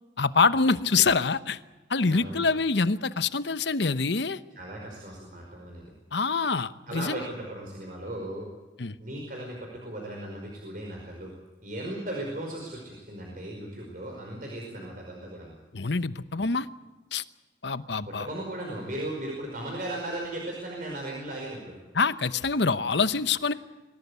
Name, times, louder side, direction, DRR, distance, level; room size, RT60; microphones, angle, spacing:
voice 1, 0.2-1.6 1.9-4.4 6.1-7.2 8.8-8.9 15.7-16.7 17.1-17.2 17.6-18.3 21.9-23.5, left 4 dB, 65° left, 14 dB, 0.9 m, -25 dB
voice 2, 2.1-2.4 4.5-5.9 6.9-8.5 9.0-11.3 11.6-15.5 18.0-21.8, right 1 dB, 45° right, -1 dB, 5.1 m, -37 dB
24.5 x 17.5 x 8.3 m, 1.2 s
head